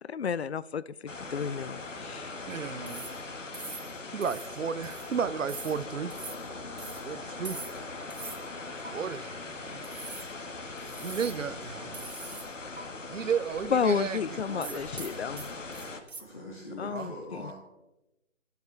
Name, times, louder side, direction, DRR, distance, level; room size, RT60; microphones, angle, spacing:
voice 1, 0.0-2.4 13.7-15.5 16.8-17.5, left 7 dB, 60° left, 0.5 m, -32 dB
sound 1, 1.1-16.0, left 3 dB, 80° left, 1.8 m, -41 dB
voice 2, 2.5-3.1 4.1-6.2 7.0-7.6 8.8-10.0 11.0-12.1 13.1-14.8 16.8-17.1, right 6 dB, 80° right, 0.7 m, -34 dB
sound 2, 2.9-3.2 3.5-3.9 4.2-4.5 4.8-5.1 5.5-5.8 6.1-6.4 6.8-7.0 7.5-7.8 8.1-8.4 8.8-8.9 9.8-10.3 10.8-11.4 11.9-12.5 12.8-12.9 14.6-16.2, right 4 dB, 55° right, 1.4 m, -43 dB
voice 3, 9.5-10.1 16.2-17.5, left 1 dB, 40° left, 3.0 m, -44 dB
22.5 x 8.1 x 3.4 m
figure-of-eight pair, 175°, 37 cm